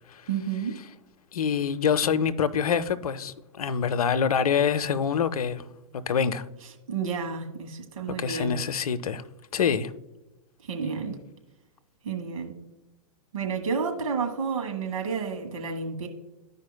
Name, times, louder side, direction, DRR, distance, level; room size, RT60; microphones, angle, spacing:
voice 1, 0.3-0.8 6.9-8.5 10.7-11.2 12.0-12.6 13.3-16.1, right 5 dB, 65° right, 1.6 m, -30 dB
voice 2, 1.3-5.6 5.9-6.4 8.2-9.2 9.5-9.9, left 7 dB, 80° left, 0.6 m, -25 dB
13.0 x 5.2 x 2.2 m
hypercardioid pair, 115°, 19 cm